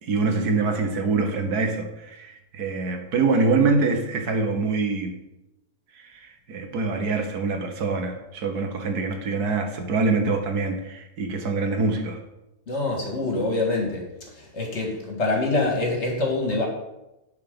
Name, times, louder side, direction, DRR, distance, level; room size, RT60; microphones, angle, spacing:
voice 1, 0.0-5.2 6.1-12.2, right 3 dB, 80° right, 5 dB, 1.6 m, -25 dB
voice 2, 12.7-14.0 14.4-16.7, left 2 dB, 45° left, 0 dB, 2.0 m, -25 dB
10.5 x 4.6 x 5.4 m, 0.93 s
omnidirectional pair, 1.6 m